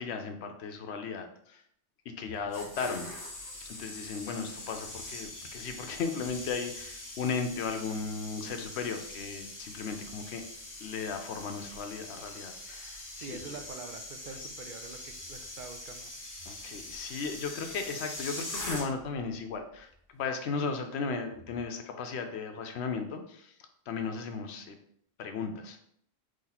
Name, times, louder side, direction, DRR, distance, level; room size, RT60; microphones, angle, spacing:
voice 1, 0.0-1.6 2.1-3.1 3.8-10.4 10.8-13.4 16.5-23.5 23.9-24.8 25.2-25.9, left 5 dB, 75° left, 6 dB, 0.9 m, -36 dB
sound 1, 2.3-19.2 19.5-19.8, left 1 dB, 20° left, 0.7 m, -43 dB
voice 2, 13.2-16.1, right 4 dB, 60° right, 6 dB, 0.6 m, -45 dB
4.2 x 3.1 x 3.9 m, 0.69 s
omnidirectional pair, 1.1 m